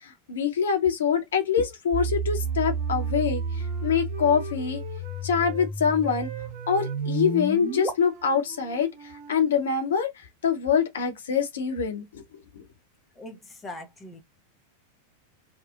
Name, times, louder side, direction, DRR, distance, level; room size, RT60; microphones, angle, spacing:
voice 1, 0.0-3.4 3.8-4.8 5.2-6.3 6.7-10.1 10.4-12.2 12.5-12.6, left 7 dB, 65° left, 0.8 m, -25 dB
sound 1, 1.9-7.9, right 3 dB, 5° right, 1.3 m, -31 dB
Wind instrument woodwind instrument, 2.3-5.7 6.0-9.9, right 6 dB, 45° right, 0.9 m, -43 dB
voice 2, 13.2-14.2, left 2 dB, 15° left, 0.6 m, -41 dB
2.7 x 2.0 x 2.4 m
figure-of-eight pair, 90°, 0 cm